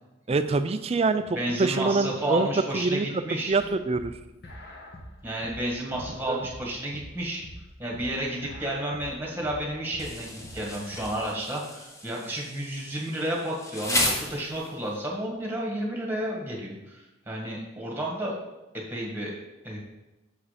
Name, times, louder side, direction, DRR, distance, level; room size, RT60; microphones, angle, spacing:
voice 1, 0.3-2.5 2.7-3.2 3.5-4.1 6.3-6.5, right 3 dB, 30° right, 10 dB, 0.3 m, -25 dB
voice 2, 1.3-3.5 5.2-7.4 7.8-18.4 18.9-19.3 19.6-19.8, right 1 dB, 10° right, -2 dB, 1.6 m, -31 dB
sound 1, 3.5-11.2, equal, 50° left, 1.2 m, -44 dB
Insect, 10.0-15.0, left 1 dB, 15° left, 0.9 m, -33 dB
7.4 x 4.8 x 5.0 m, 1.0 s
head